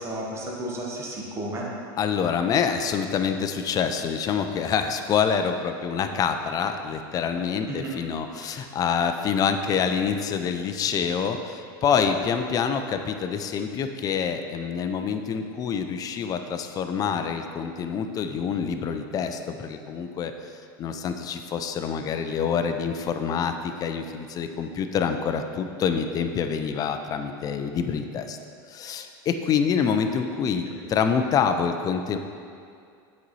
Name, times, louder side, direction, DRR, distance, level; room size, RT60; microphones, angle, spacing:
voice 1, 0.0-1.7 7.7-8.0 8.4-8.5, right 1 dB, 25° right, -3 dB, 1.0 m, -33 dB
voice 2, 2.0-20.3 20.8-28.4 28.7-32.2, left 6 dB, 30° left, 7 dB, 0.4 m, -26 dB
7.7 x 4.1 x 3.1 m, 2.4 s
supercardioid pair, 120°, 12 cm